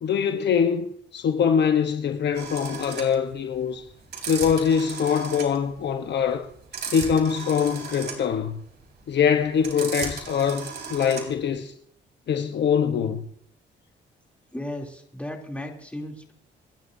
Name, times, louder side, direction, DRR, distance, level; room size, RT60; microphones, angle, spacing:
voice 1, 0.0-0.9 1.1-3.8 4.3-6.5 6.9-8.6 9.1-11.7 12.3-13.2, left 7 dB, 60° left, 1.1 m, -23 dB
sound 1, 2.3-11.5, right 5 dB, 60° right, 3.9 m, -36 dB
voice 2, 14.5-16.3, left 1 dB, 5° left, 3.2 m, -35 dB
28.0 x 11.0 x 2.8 m
cardioid pair, 90°, 20 cm